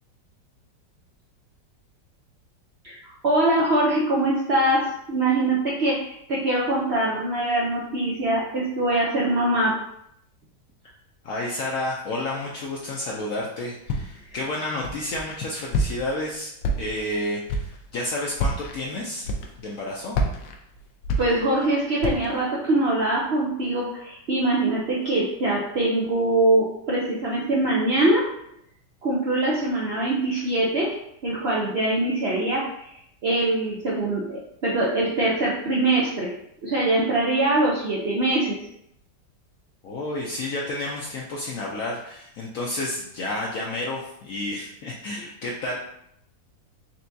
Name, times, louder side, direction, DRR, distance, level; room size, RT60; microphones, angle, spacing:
voice 1, 3.2-9.7 21.2-28.2 29.0-30.9 31.2-33.0 33.2-36.3 36.6-38.6, right 1 dB, 85° right, -5 dB, 0.5 m, -23 dB
voice 2, 11.2-16.5 16.8-19.3 19.6-20.2 39.8-45.8, left 1 dB, 70° left, -3 dB, 0.8 m, -30 dB
Walk footsteps, 13.9-14.3 14.8-15.4 15.7-16.2 16.6-17.1 17.5-17.8 18.3-18.7 19.2-19.8 20.1-21.7 22.0-22.4, equal, 85° left, 1.3 m, -27 dB
4.4 x 3.4 x 2.7 m, 0.74 s
omnidirectional pair, 2.0 m